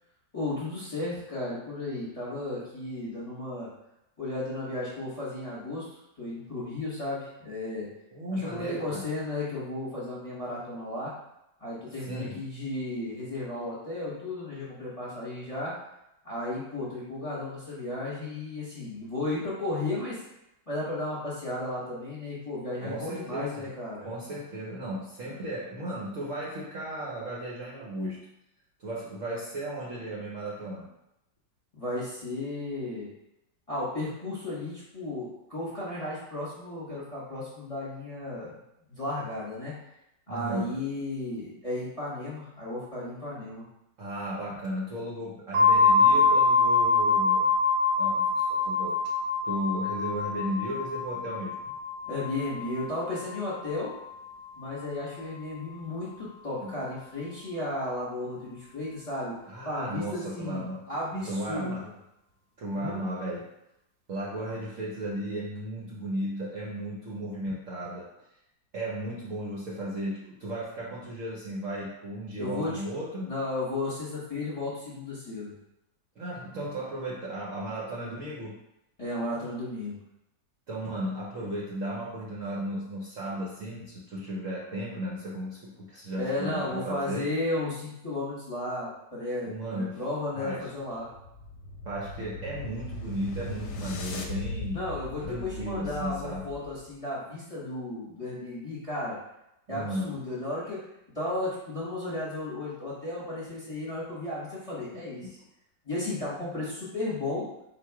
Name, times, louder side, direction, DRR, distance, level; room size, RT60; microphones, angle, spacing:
voice 1, 0.3-3.7 4.2-7.9 8.3-11.1 11.6-15.7 16.2-20.2 20.7-24.1 31.7-33.1 33.7-38.6 38.9-39.8 40.3-43.6 52.1-53.9 54.5-59.4 59.6-61.9 62.7-63.0 72.4-72.8 73.2-75.5 79.0-80.0 86.2-91.1 94.7-99.2 99.7-100.8 101.1-105.3 105.8-107.5, left 2 dB, 25° left, -7 dB, 1.0 m, -34 dB
voice 2, 8.1-9.0 12.1-12.4 22.8-23.7 24.0-28.2 28.8-30.9 40.3-40.8 44.0-47.5 47.9-49.0 49.4-51.7 56.6-56.7 59.5-60.9 61.1-61.9 62.6-63.5 64.1-68.1 68.7-73.3 76.2-78.6 80.7-87.3 89.5-90.0 90.3-90.7 91.8-94.9 95.2-96.5 99.7-100.2 104.9-105.0, right 1 dB, 55° right, -5 dB, 0.9 m, -35 dB
sound 1, 45.5-55.2, left 3 dB, 80° right, 1.2 m, -25 dB
sound 2, 90.9-96.9, left 2 dB, 70° left, 1.1 m, -39 dB
4.0 x 2.5 x 4.6 m, 0.86 s
omnidirectional pair, 2.0 m